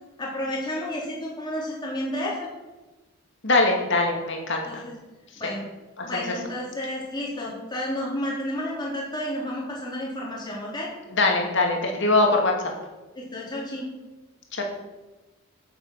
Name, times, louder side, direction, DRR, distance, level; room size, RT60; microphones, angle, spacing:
voice 1, 0.2-2.5 4.7-4.9 5.4-5.6 6.0-10.9 13.1-13.9, left 1 dB, 20° left, -4 dB, 4.0 m, -31 dB
voice 2, 3.4-4.8 6.0-6.2 11.1-12.5 14.6-14.7, left 2 dB, 55° left, 1 dB, 2.7 m, -22 dB
9.6 x 8.0 x 7.8 m, 1.2 s
head